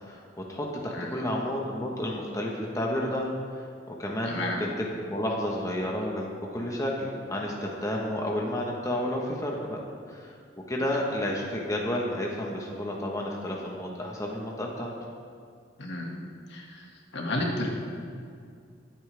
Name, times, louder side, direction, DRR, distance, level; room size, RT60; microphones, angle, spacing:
voice 1, 0.1-3.3 3.6-3.7 4.0-4.7 5.1-9.8 10.1-10.3 10.7-14.9, left 1 dB, 15° left, -2 dB, 1.3 m, -31 dB
voice 2, 4.3-4.6 15.8-16.1 16.5-16.8 17.1-17.7, left 1 dB, 65° left, 0 dB, 2.0 m, -32 dB
21.5 x 8.7 x 3.5 m, 2.2 s
head